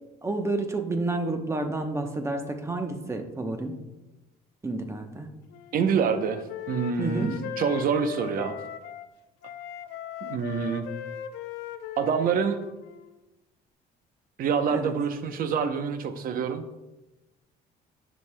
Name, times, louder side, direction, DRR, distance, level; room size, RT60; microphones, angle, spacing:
voice 1, 0.2-3.8 4.6-5.3 7.0-7.4 14.7-15.0, right 2 dB, 15° right, 5 dB, 0.8 m, -30 dB
Wind instrument woodwind instrument, 5.5-9.1 9.4-13.2, left 9 dB, 85° left, 0.5 m, -39 dB
voice 2, 5.7-8.6 10.2-10.9 12.0-12.6 14.4-16.6, right 6 dB, 55° right, 9 dB, 0.7 m, -26 dB
10.5 x 6.3 x 2.2 m, 1.0 s
cardioid pair, 110°, 17 cm